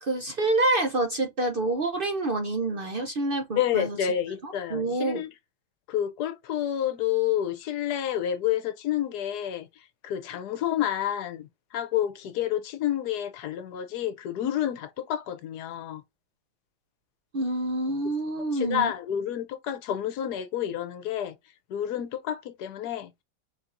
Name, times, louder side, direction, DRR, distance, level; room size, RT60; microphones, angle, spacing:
voice 1, 0.0-4.0 4.4-5.2 17.3-18.9, right 2 dB, 70° right, 0.5 m, -27 dB
voice 2, 3.6-5.3 5.9-9.7 10.0-11.5 11.7-16.0 18.5-21.3 21.7-23.1, left 10 dB, 70° left, 1.2 m, -29 dB
4.3 x 4.3 x 2.5 m
omnidirectional pair, 1.9 m